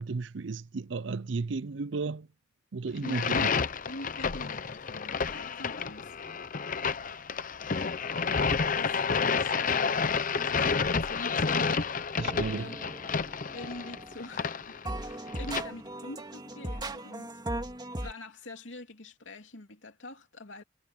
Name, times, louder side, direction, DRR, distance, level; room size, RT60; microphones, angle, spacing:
voice 1, 0.0-2.3 2.7-3.5 12.2-12.7, right 4 dB, 70° right, 0.6 m, -33 dB
voice 2, 3.0-6.2 8.7-11.7 12.5-12.7 13.5-17.4 18.0-20.6, left 2 dB, 75° left, 3.0 m, -44 dB
sound 1, 3.0-15.6, left 5 dB, 45° left, 0.8 m, -30 dB
sound 2, 12.2-14.5 14.8-18.1, right 1 dB, 25° right, 2.4 m, -39 dB
head